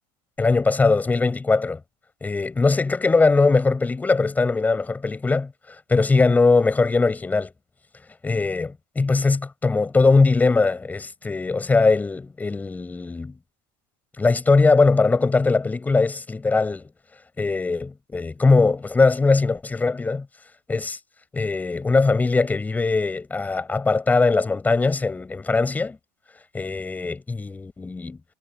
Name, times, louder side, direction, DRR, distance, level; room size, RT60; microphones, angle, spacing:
voice 1, 0.4-1.8 2.2-7.5 8.2-13.3 14.2-16.9 17.4-20.3 20.7-21.0 21.3-26.0 26.5-28.2, left 3 dB, 15° left, 7.3 m, -20 dB
supercardioid pair, 120°, 12 cm